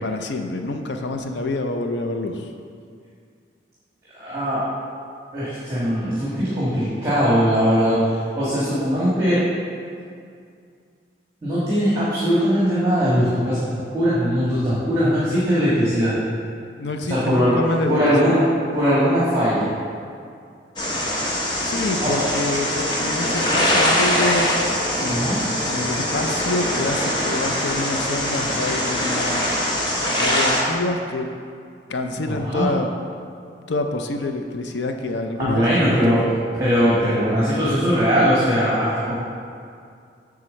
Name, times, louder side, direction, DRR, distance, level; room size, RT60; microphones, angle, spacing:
voice 1, 0.0-2.5 16.8-18.3 21.6-24.5 25.0-31.3 31.9-32.9 33.7-36.3, left 2 dB, 80° left, 5 dB, 0.5 m, -27 dB
voice 2, 4.2-4.6 5.3-8.0 8.4-9.4 11.4-13.6 13.9-16.1 17.0-17.6 17.9-18.4 18.7-19.7 22.0-22.1 25.1-25.4 32.3-32.7 35.4-36.2 36.6-39.1, equal, 20° right, -10 dB, 1.5 m, -20 dB
sound 1, 20.8-30.6, equal, 25° left, 0.9 m, -22 dB
sound 2, 22.4-27.4, right 2 dB, 50° right, 0.7 m, -40 dB
7.4 x 3.7 x 6.3 m, 2.3 s
head